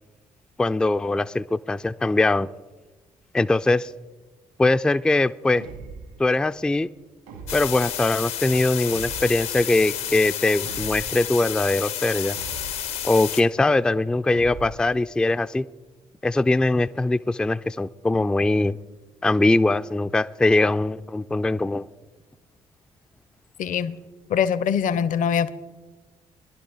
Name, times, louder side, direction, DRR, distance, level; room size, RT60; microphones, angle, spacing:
voice 1, 0.6-2.5 3.3-3.9 4.6-5.7 6.2-6.9 7.5-12.4 13.0-15.7 16.2-18.8 19.2-21.9, left 2 dB, 5° left, 0.3 m, -21 dB
sound 1, 5.6-6.2 7.3-7.9 8.9-9.5 10.6-11.3 12.3-13.0 14.3-14.9, right 4 dB, 80° right, 2.1 m, -40 dB
sound 2, 7.5-13.4, left 10 dB, 80° left, 1.0 m, -31 dB
voice 2, 23.6-24.0 24.3-25.5, left 7 dB, 50° left, 0.6 m, -23 dB
20.5 x 11.5 x 4.0 m
figure-of-eight pair, 45°, 17 cm